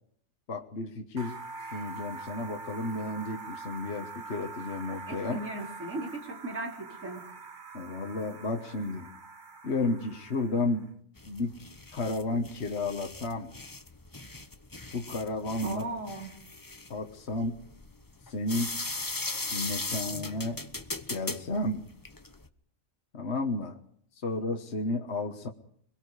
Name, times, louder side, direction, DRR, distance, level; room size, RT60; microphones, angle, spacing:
voice 1, 0.5-1.4 1.7-5.4 7.7-9.1 9.6-10.9 11.3-11.5 11.9-13.5 14.9-15.9 16.9-17.6 18.3-18.8 19.5-20.6 21.1-21.9 23.1-23.8 24.2-25.5, left 2 dB, 55° left, 4 dB, 1.6 m, -32 dB
sound 1, 1.2-10.9, right 4 dB, 35° right, 1.3 m, -44 dB
voice 2, 5.1-7.2 15.6-16.3, right 2 dB, 65° right, 1 dB, 4.8 m, -37 dB
sound 2, 11.2-22.5, left 2 dB, 15° left, 0.9 m, -39 dB
24.5 x 22.5 x 4.9 m, 0.63 s
omnidirectional pair, 1.4 m